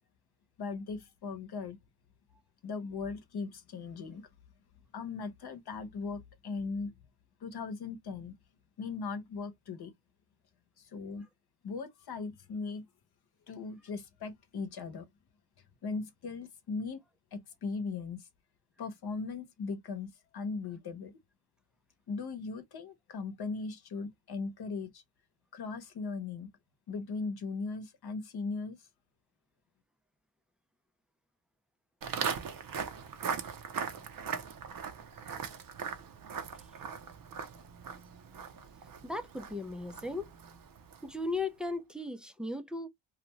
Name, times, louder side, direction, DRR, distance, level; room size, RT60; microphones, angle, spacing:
voice 1, 0.6-1.8 2.6-4.3 4.9-6.9 7.4-8.3 8.8-9.9 10.8-11.3 11.6-12.9 13.5-15.1 15.8-17.0 17.3-18.3 18.8-21.1 22.1-25.0 25.5-26.5 26.9-28.9, left 4 dB, 55° left, 0.9 m, -38 dB
Walk footsteps, 32.0-41.2, right 6 dB, 50° right, 0.6 m, -40 dB
voice 2, 39.0-40.3 41.0-42.9, left 2 dB, ahead, 0.4 m, -36 dB
2.6 x 2.2 x 2.9 m
cardioid pair, 105°, 46 cm